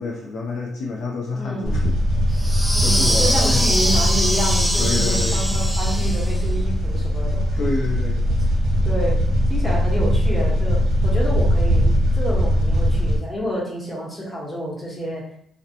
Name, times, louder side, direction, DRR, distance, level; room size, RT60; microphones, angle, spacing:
voice 1, 0.0-1.8 2.3-2.5 2.8-3.7 4.8-5.4 7.6-8.2, left 3 dB, 65° left, -1 dB, 0.4 m, -28 dB
voice 2, 1.3-1.8 2.7-7.6 8.3-8.4 8.6-9.2 9.5-15.2, equal, 20° left, -5 dB, 1.1 m, -29 dB
sound 1, 1.6-13.2, equal, 80° right, 0.6 m, -20 dB
sound 2, 2.4-6.4, equal, 5° right, 0.3 m, -23 dB
2.4 x 2.1 x 2.7 m, 0.69 s
cardioid pair, 90°, 0 cm